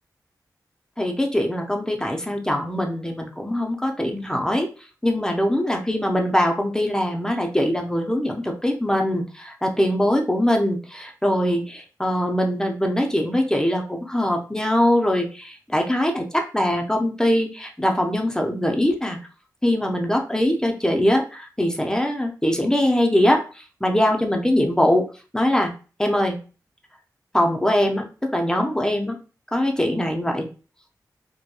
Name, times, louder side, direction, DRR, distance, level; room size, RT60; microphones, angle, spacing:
voice 1, 1.0-4.7 5.0-19.2 19.6-25.1 25.3-25.7 26.0-26.4 27.3-29.2 29.5-30.5, left 1 dB, 10° left, 2 dB, 0.6 m, -22 dB
2.8 x 2.2 x 2.2 m, 0.35 s
cardioid pair, 55°, 7 cm